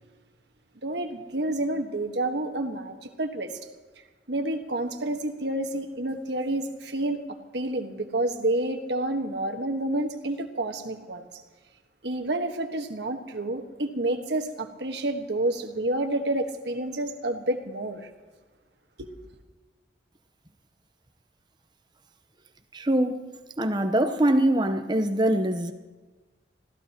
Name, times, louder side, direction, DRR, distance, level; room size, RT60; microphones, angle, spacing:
voice 1, 0.8-3.5 4.3-7.2 7.5-11.4 12.0-18.1 19.0-19.1, right 1 dB, 70° right, 1.4 m, -29 dB
voice 2, 22.7-23.2 23.6-25.7, right 1 dB, 25° right, 0.9 m, -23 dB
25.5 x 16.0 x 3.0 m
head